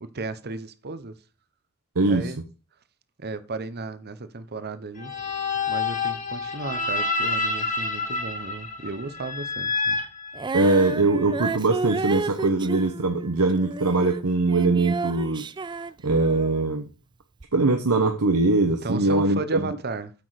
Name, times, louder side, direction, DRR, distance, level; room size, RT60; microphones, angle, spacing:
voice 1, 0.0-1.1 2.1-2.4 3.2-5.1 5.7-10.0 18.8-20.1, right 3 dB, 45° right, 0.9 m, -34 dB
voice 2, 1.9-2.3 10.5-15.4 16.0-16.9 17.5-19.8, right 3 dB, 85° right, 1.0 m, -22 dB
sound 1, 5.0-11.0, left 3 dB, 35° left, 1.8 m, -28 dB
Female singing, 10.3-16.7 17.4-17.5, right 3 dB, 20° right, 0.4 m, -31 dB
8.4 x 6.1 x 4.9 m
head